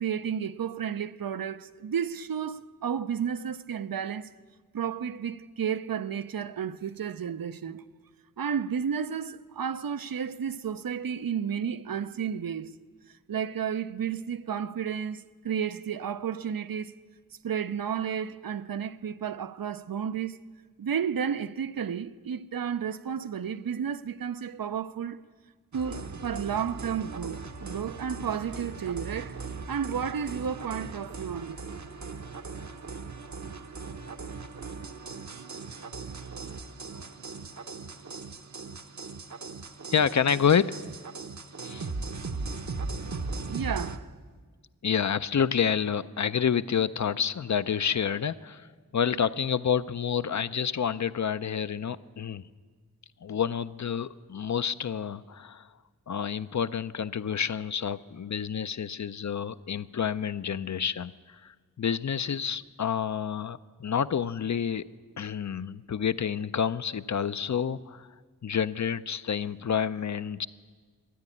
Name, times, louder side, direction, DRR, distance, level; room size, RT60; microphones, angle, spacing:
voice 1, 0.0-4.3 4.7-7.8 8.4-12.7 13.3-16.9 17.4-20.4 20.8-25.2 25.7-29.4 29.7-31.6 43.5-44.1, right 7 dB, 80° right, 0.5 m, -32 dB
sound 1, 25.7-44.0, right 4 dB, 55° right, 0.8 m, -39 dB
voice 2, 39.9-40.7 41.6-41.9 44.8-48.7 48.9-52.4 53.2-55.7 56.1-61.1 61.4-64.9 65.2-68.1 68.4-70.5, left 7 dB, 55° left, 0.5 m, -28 dB
13.0 x 9.9 x 9.8 m
wide cardioid pair, 50°, 34 cm